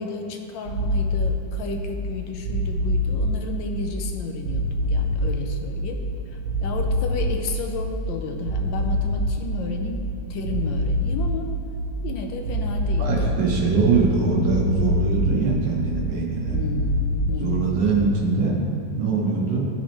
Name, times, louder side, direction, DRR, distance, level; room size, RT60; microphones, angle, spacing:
voice 1, 0.0-6.0 6.6-11.5 12.0-13.3 16.5-17.8, left 4 dB, 85° left, 3 dB, 1.4 m, -32 dB
sound 1, 0.6-17.4, equal, 50° right, 1.3 m, -26 dB
voice 2, 13.0-16.6 17.4-18.6 19.0-19.7, right 4 dB, 70° right, -2 dB, 1.7 m, -22 dB
12.5 x 4.3 x 3.0 m, 2.5 s
omnidirectional pair, 2.0 m